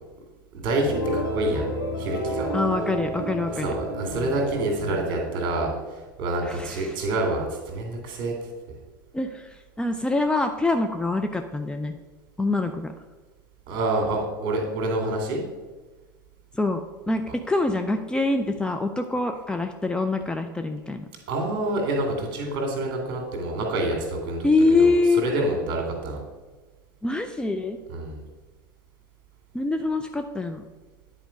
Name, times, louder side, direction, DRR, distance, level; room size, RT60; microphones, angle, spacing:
voice 1, 0.5-1.7 2.0-2.5 3.5-8.3 13.7-15.4 21.3-26.2 27.9-28.2, right 2 dB, 45° right, 2 dB, 2.2 m, -27 dB
sound 1, 0.8-5.9, equal, 85° left, 1.9 m, -31 dB
voice 2, 2.5-3.7 6.5-6.8 9.1-11.9 12.4-12.9 16.6-16.8 17.1-21.1 24.4-25.2 27.0-27.8 29.5-30.6, left 3 dB, 10° left, 5 dB, 0.5 m, -24 dB
9.2 x 4.5 x 5.0 m, 1.3 s
figure-of-eight pair, 80°, 11 cm